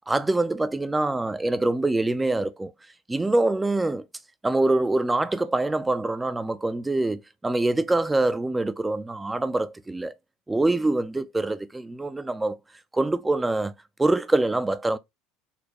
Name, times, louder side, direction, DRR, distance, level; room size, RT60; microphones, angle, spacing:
voice 1, 0.1-2.7 3.1-4.1 4.4-10.1 10.5-12.6 12.9-13.7 14.0-15.0, right 2 dB, 10° right, 0.3 m, -24 dB
4.1 x 2.2 x 2.9 m
hypercardioid pair, 70°, 0 cm